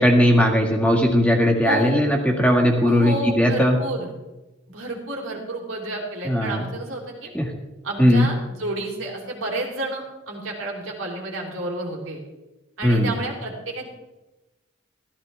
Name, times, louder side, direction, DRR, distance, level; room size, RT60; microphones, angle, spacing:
voice 1, 0.0-3.8 6.3-6.6 7.3-7.5 8.0-8.3 12.8-13.2, equal, 5° left, -1 dB, 1.9 m, -18 dB
voice 2, 1.6-2.0 2.8-4.1 4.7-7.3 7.8-12.2 12.8-13.9, right 1 dB, 75° right, -1 dB, 3.4 m, -30 dB
14.5 x 14.0 x 3.5 m, 1.1 s
head